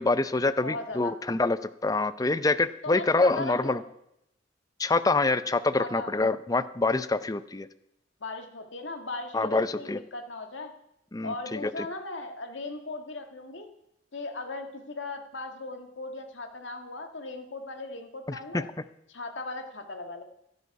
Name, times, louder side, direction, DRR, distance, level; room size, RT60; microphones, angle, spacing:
voice 1, 0.0-3.8 4.8-7.7 9.3-10.0 11.1-11.7 18.3-18.6, left 3 dB, 20° left, 14 dB, 0.5 m, -26 dB
voice 2, 0.6-1.1 2.8-3.8 5.8-6.1 8.2-10.7 11.2-13.7 14.1-18.7 19.1-20.2, left 2 dB, 75° left, 5 dB, 1.7 m, -38 dB
16.0 x 12.5 x 4.8 m, 0.81 s
head